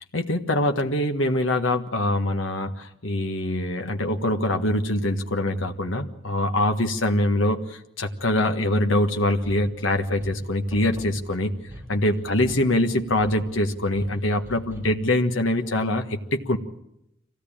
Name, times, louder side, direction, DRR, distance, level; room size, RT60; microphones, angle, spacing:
voice 1, 0.1-11.5 11.9-16.6, left 1 dB, 85° left, 5 dB, 1.6 m, -24 dB
sound 1, 9.2-15.1, equal, 10° right, 4.1 m, -43 dB
25.0 x 16.5 x 8.8 m, 0.83 s
head